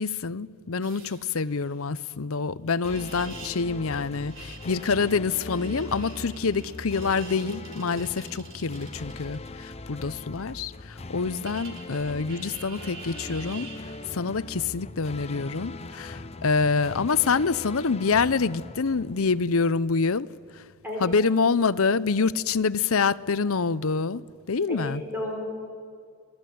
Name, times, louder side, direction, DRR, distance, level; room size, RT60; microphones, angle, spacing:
voice 1, 0.0-13.7 14.1-20.3 21.0-25.0, left 4 dB, 65° left, 0.7 m, -26 dB
sound 1, 0.8-1.9 2.8-3.6 3.9-9.5 11.4-14.1 16.4-16.6, right 5 dB, 60° right, 3.8 m, -47 dB
sound 2, 2.8-19.9, left 2 dB, 30° left, 0.8 m, -41 dB
voice 2, 24.7-25.3, left 1 dB, 10° right, 4.7 m, -32 dB
29.5 x 20.5 x 9.4 m
head